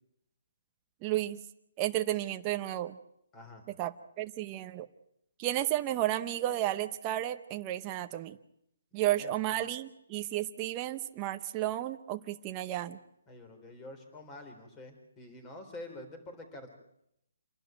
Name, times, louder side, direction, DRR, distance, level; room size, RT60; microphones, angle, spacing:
voice 1, 1.0-1.4 1.8-3.0 3.8-4.9 5.4-8.4 8.9-13.0, right 14 dB, 20° right, 7 dB, 0.8 m, -32 dB
voice 2, 3.3-3.6 8.9-9.3 13.3-16.7, left 2 dB, 15° left, 6 dB, 3.9 m, -47 dB
27.5 x 11.5 x 9.2 m, 0.77 s
hypercardioid pair, 165°, 0 cm